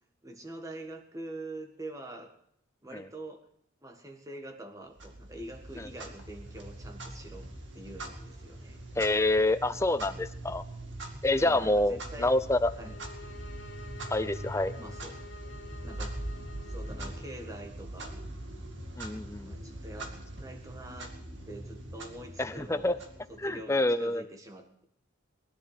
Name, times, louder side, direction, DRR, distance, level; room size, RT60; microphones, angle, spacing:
voice 1, 0.2-2.3 2.8-3.4 3.8-7.5 7.7-8.8 11.3-12.3 12.8-12.9 14.8-15.2 15.5-18.2 19.5-21.1 21.5-23.0 23.3-24.8, right 1 dB, 15° right, 3 dB, 1.8 m, -45 dB
Clock, 5.0-23.7, right 1 dB, 65° right, 2.2 m, -42 dB
voice 2, 9.0-10.6 11.2-12.9 14.1-14.7 19.0-19.6 22.4-22.9 23.4-24.2, left 2 dB, 15° left, 11 dB, 0.6 m, -27 dB
sound 1, 12.6-17.5, left 3 dB, 70° left, 2.8 m, -49 dB
20.5 x 11.5 x 5.1 m, 0.70 s
head